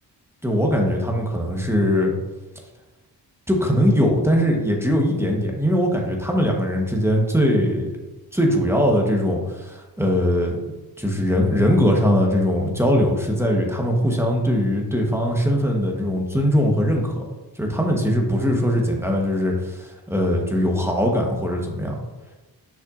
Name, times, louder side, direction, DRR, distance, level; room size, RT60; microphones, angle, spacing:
voice 1, 0.4-2.1 3.5-7.9 8.3-10.6 11.0-17.2 17.6-21.9, equal, 5° right, 0 dB, 1.0 m, -21 dB
6.9 x 5.5 x 2.5 m, 1.1 s
wide cardioid pair, 100°, 43 cm